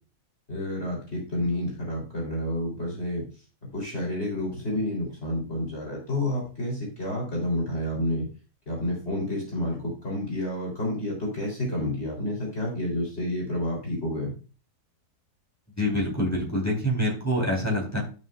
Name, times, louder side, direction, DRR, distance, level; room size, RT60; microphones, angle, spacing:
voice 1, 0.5-3.2 3.7-8.3 8.7-14.3, left 1 dB, 40° left, -2 dB, 3.9 m, -29 dB
voice 2, 15.8-18.0, equal, 10° left, -2 dB, 3.7 m, -26 dB
12.5 x 6.6 x 2.5 m, 0.35 s
omnidirectional pair, 1.6 m